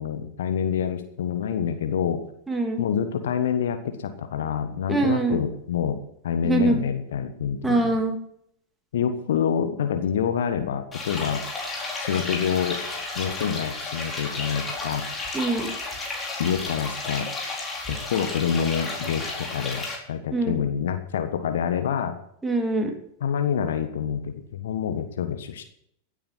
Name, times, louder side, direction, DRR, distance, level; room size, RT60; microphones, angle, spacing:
voice 1, 0.0-2.2 2.8-6.0 6.2-7.9 8.9-11.4 12.0-12.8 13.1-15.0 16.4-17.3 17.9-22.2 23.2-25.6, left 8 dB, 60° left, 9 dB, 1.3 m, -27 dB
voice 2, 2.5-2.8 4.9-5.4 6.4-6.8 7.6-8.1 15.3-15.7 20.3-20.6 22.4-22.9, right 2 dB, 10° right, 3 dB, 3.0 m, -23 dB
sound 1, 10.9-20.0, left 3 dB, 15° left, 4.5 m, -32 dB
16.0 x 9.2 x 6.1 m, 0.72 s
figure-of-eight pair, 90°, 0 cm